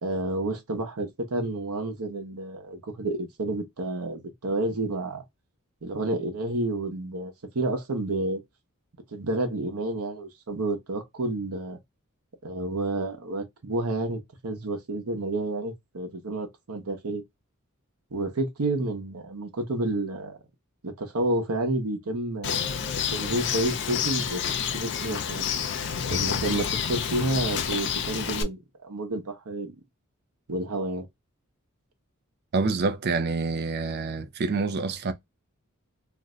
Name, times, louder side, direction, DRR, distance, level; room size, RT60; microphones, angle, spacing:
voice 1, 0.0-5.2 5.8-8.4 9.1-11.8 12.4-17.2 18.1-20.4 20.8-22.7 23.1-24.4 24.7-25.5 26.1-29.7 30.5-31.1, right 2 dB, 90° right, 0.8 m, -30 dB
Bird, 22.4-28.4, left 7 dB, 55° left, 0.4 m, -29 dB
voice 2, 32.5-35.1, right 4 dB, 50° right, 0.4 m, -27 dB
2.5 x 2.1 x 3.6 m
head